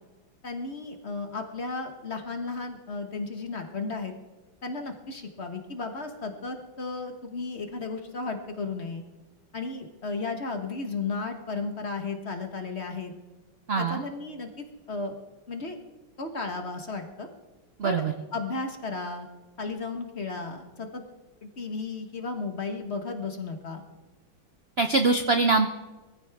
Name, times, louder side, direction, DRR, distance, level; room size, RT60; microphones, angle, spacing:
voice 1, 0.4-4.1 4.6-9.0 9.5-13.1 13.8-14.5 14.9-15.1 15.5-15.8 16.2-17.3 17.8-18.0 18.3-19.3 19.6-21.0 21.4-23.8, left 3 dB, 35° left, 5 dB, 1.4 m, -34 dB
voice 2, 13.7-14.0 17.8-18.1 24.8-25.7, right 3 dB, 80° right, 7 dB, 0.5 m, -23 dB
22.0 x 15.0 x 3.5 m, 1.2 s
omnidirectional pair, 2.1 m